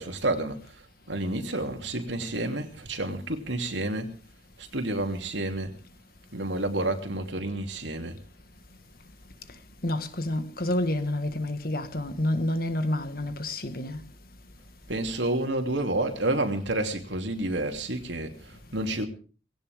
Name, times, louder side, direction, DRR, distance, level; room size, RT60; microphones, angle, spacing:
voice 1, 0.0-4.1 4.6-5.7 6.3-8.2 14.9-19.1, right 2 dB, 85° right, 2.9 m, -30 dB
voice 2, 9.8-14.0, left 1 dB, 55° left, 1.6 m, -29 dB
19.5 x 17.0 x 3.6 m
head